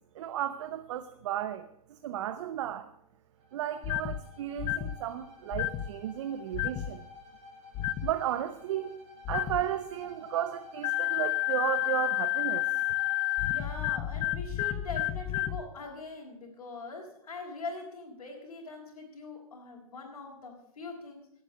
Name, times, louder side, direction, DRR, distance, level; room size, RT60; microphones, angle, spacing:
voice 1, 0.1-2.9 3.5-7.0 8.0-9.0 9.3-12.7, right 11 dB, 55° right, 10 dB, 0.8 m, -34 dB
Bowed string instrument, 3.4-13.9, left 4 dB, 30° right, 4.4 m, -52 dB
sound 1, 3.8-4.2 4.6-5.0 5.5-5.9 6.5-6.9 7.7-8.1 9.2-9.6 10.8-15.6, left 15 dB, 30° left, 0.8 m, -30 dB
voice 2, 13.4-21.3, left 3 dB, 70° left, -4 dB, 3.3 m, -42 dB
15.5 x 8.0 x 6.6 m, 0.75 s
hypercardioid pair, 120°, 19 cm